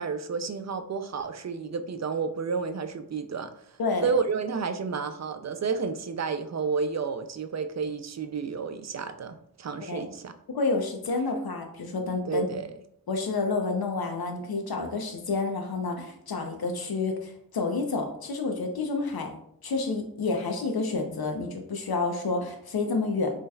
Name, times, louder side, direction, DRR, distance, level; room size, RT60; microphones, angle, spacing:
voice 1, 0.0-3.5 4.0-10.3 12.2-12.7, right 5 dB, 45° right, 10 dB, 0.5 m, -31 dB
voice 2, 3.8-4.1 9.8-10.0 10.5-12.5 13.1-19.3 19.6-23.3, left 3 dB, 80° left, 4 dB, 0.8 m, -29 dB
5.2 x 3.3 x 2.3 m, 0.71 s
cardioid pair, 45°, 37 cm